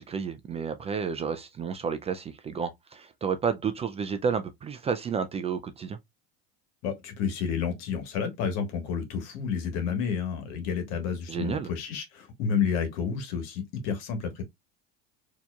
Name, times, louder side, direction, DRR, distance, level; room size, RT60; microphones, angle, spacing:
voice 1, 0.0-6.0 11.3-11.7, right 6 dB, 20° right, 0.4 m, -31 dB
voice 2, 6.8-14.4, left 6 dB, 65° left, 1.4 m, -30 dB
4.3 x 2.9 x 2.3 m
supercardioid pair, 115°, 29 cm